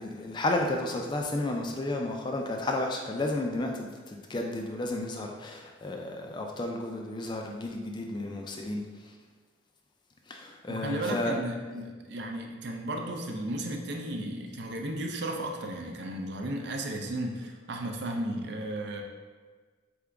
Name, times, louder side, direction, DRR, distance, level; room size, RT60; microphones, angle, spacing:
voice 1, 0.0-9.1 10.3-11.4, left 2 dB, 25° left, 2 dB, 0.3 m, -32 dB
voice 2, 10.7-19.0, right 1 dB, 55° right, 3 dB, 0.5 m, -34 dB
3.8 x 3.6 x 3.4 m, 1.4 s
head